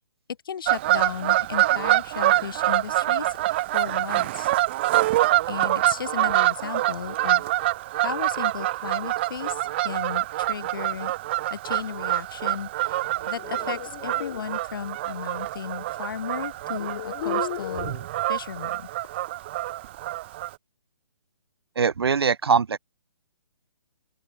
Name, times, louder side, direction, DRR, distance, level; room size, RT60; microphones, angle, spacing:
voice 1, 0.4-4.5 5.5-7.5 8.0-11.1 11.5-17.9 18.3-18.9, left 7 dB, 50° left, 1.2 m, -35 dB
Fowl / Bird vocalization bird call bird song, 0.7-20.5, right 16 dB, 25° right, 0.4 m, -25 dB
sound 1, 13.1-14.4 15.9-16.0 16.7-18.0, left 16 dB, 30° left, 1.0 m, -35 dB
voice 2, 21.8-22.8, right 6 dB, 60° right, 0.9 m, -22 dB
open air
figure-of-eight pair, 135°, 15 cm